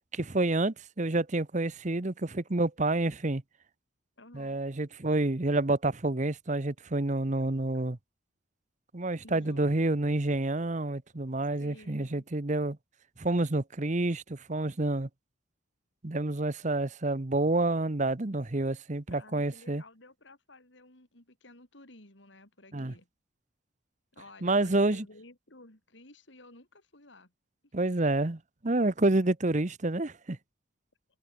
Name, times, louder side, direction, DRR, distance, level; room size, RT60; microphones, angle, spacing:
voice 1, 0.1-3.4 4.3-8.0 8.9-12.8 13.2-15.1 16.0-19.8 22.7-22.9 24.4-25.0 27.7-30.4, right 2 dB, 40° right, 1.0 m, -28 dB
voice 2, 4.2-4.6 9.2-9.9 11.6-12.2 19.1-23.1 24.1-27.3, left 2 dB, 70° left, 4.8 m, -54 dB
head